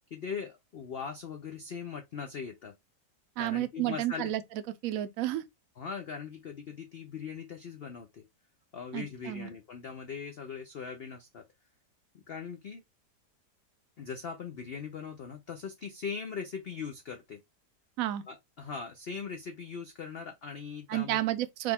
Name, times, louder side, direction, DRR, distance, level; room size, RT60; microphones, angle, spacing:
voice 1, 0.1-2.7 3.4-4.3 5.8-8.2 8.7-11.4 12.3-12.8 14.0-17.4 18.3-21.2, left 6 dB, 75° left, 0.5 m, -40 dB
voice 2, 3.4-4.4 4.8-5.4 8.9-9.5 18.0-18.2 20.9-21.7, right 14 dB, 65° right, 0.9 m, -31 dB
5.0 x 2.3 x 3.4 m
omnidirectional pair, 1.8 m